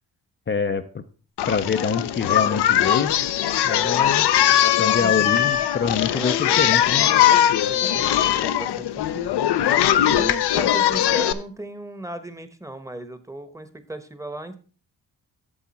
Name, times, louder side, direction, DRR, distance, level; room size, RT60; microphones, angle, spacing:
voice 1, 0.5-1.0 1.5-3.1 3.6-4.3 4.8-7.1, left 6 dB, 30° left, 7 dB, 0.6 m, -25 dB
Singing, 1.4-11.3, left 11 dB, 70° left, 0.7 m, -20 dB
voice 2, 6.1-6.8 7.6-9.4 10.0-14.6, right 1 dB, 5° right, 11 dB, 1.0 m, -36 dB
8.5 x 7.0 x 4.1 m, 0.39 s
cardioid pair, 70°, 41 cm